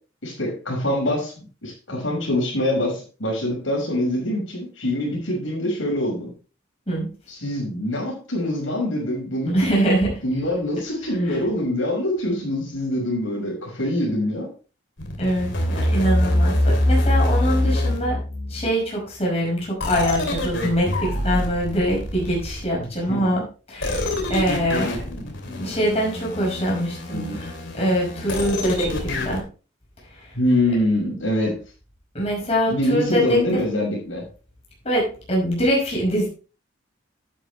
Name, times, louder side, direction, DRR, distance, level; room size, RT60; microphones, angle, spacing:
voice 1, 0.2-6.3 7.3-9.8 10.2-14.5 22.8-23.4 27.1-27.4 30.3-31.6 32.7-34.2, left 1 dB, 85° left, -2 dB, 5.8 m, -24 dB
voice 2, 9.5-10.1 11.3-11.4 15.2-18.2 18.5-23.4 23.7-24.9 25.6-29.4 32.1-33.4 34.8-36.3, equal, 30° left, -3 dB, 5.3 m, -23 dB
sound 1, 15.0-18.7 19.8-22.9 23.8-29.4, left 1 dB, 70° left, 2.9 m, -25 dB
11.5 x 8.7 x 3.2 m, 0.35 s
head